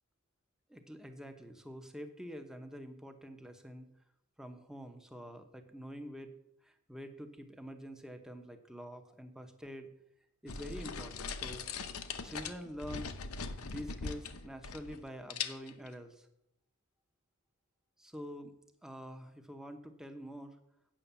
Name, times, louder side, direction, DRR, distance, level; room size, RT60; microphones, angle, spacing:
voice 1, 0.7-3.9 4.4-6.3 6.6-9.9 10.4-11.7 12.2-13.1 13.6-16.3 18.0-18.5 18.8-20.6, equal, 5° right, 6 dB, 0.8 m, -46 dB
sound 1, 10.5-15.0 15.3-15.9, left 5 dB, 75° left, 0.8 m, -41 dB
8.8 x 6.4 x 6.9 m, 0.78 s
head